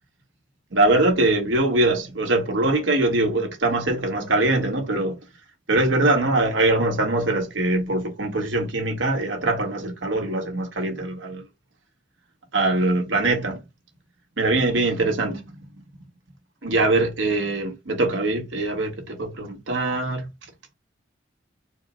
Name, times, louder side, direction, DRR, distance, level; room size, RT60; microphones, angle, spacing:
voice 1, 0.7-5.2 5.7-11.4 12.5-13.6 14.4-15.4 16.6-20.3, right 2 dB, 85° right, 1.5 m, -22 dB
4.5 x 2.1 x 3.9 m
head